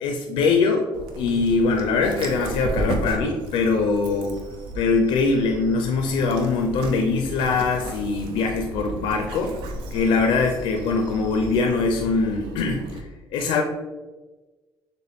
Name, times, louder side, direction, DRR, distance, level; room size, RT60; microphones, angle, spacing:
voice 1, 0.0-0.8 1.1-4.4 4.7-9.6 9.9-12.9 13.3-13.6, left 4 dB, 85° left, 3 dB, 0.5 m, -22 dB
Dog, 0.9-13.0, right 2 dB, 85° right, 0.6 m, -35 dB
6.5 x 2.2 x 3.4 m, 1.2 s
cardioid pair, 90°, 8 cm